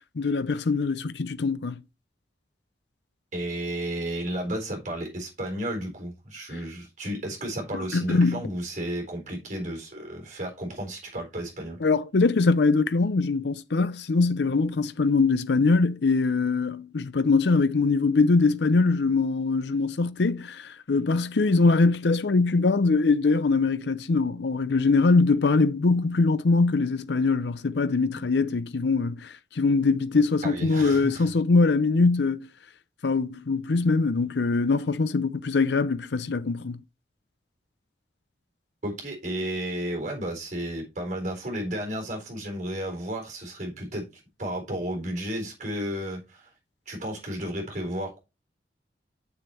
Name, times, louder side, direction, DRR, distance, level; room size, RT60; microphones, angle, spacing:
voice 1, 0.2-1.8 7.9-8.4 11.8-32.5 33.0-36.8, left 3 dB, 70° left, 0.6 m, -22 dB
voice 2, 3.3-11.8 30.4-31.3 38.8-46.5 46.9-48.2, right 1 dB, 40° right, 4.1 m, -33 dB
7.1 x 6.7 x 4.4 m
head